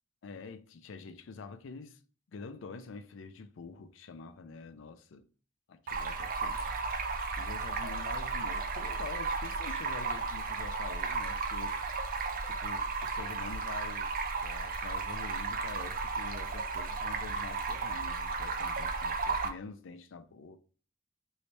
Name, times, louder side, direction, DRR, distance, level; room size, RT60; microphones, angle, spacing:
voice 1, 0.2-2.0 2.3-5.3 5.7-6.9 7.4-11.8 12.4-14.1 14.4-20.6, left 4 dB, 75° left, 0.4 m, -46 dB
Stream, 5.9-19.5, right 4 dB, 45° right, 0.5 m, -34 dB
3.1 x 3.1 x 2.8 m
head